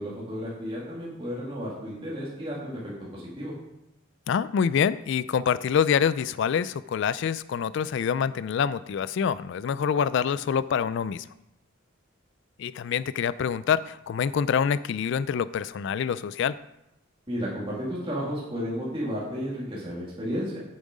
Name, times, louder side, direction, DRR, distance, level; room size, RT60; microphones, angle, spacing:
voice 1, 0.0-3.5 17.3-20.6, equal, 25° right, -7 dB, 2.1 m, -33 dB
voice 2, 4.3-11.3 12.6-16.6, left 7 dB, 60° left, 17 dB, 0.3 m, -26 dB
9.2 x 7.2 x 5.0 m, 0.88 s
head